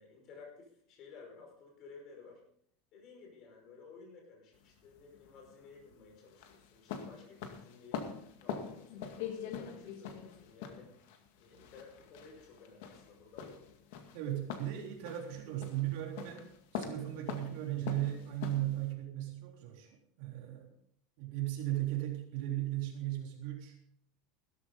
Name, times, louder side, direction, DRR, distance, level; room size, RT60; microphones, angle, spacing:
voice 1, 0.0-2.4 2.9-8.1 8.4-11.0 11.4-13.5, left 4 dB, 35° left, 1 dB, 5.3 m, -55 dB
sound 1, 4.5-18.9, left 7 dB, 65° left, 2.0 m, -44 dB
voice 2, 14.1-20.7 21.2-23.8, right 14 dB, 55° right, 0 dB, 3.7 m, -37 dB
16.5 x 13.5 x 3.9 m, 0.66 s
supercardioid pair, 170°, 0 cm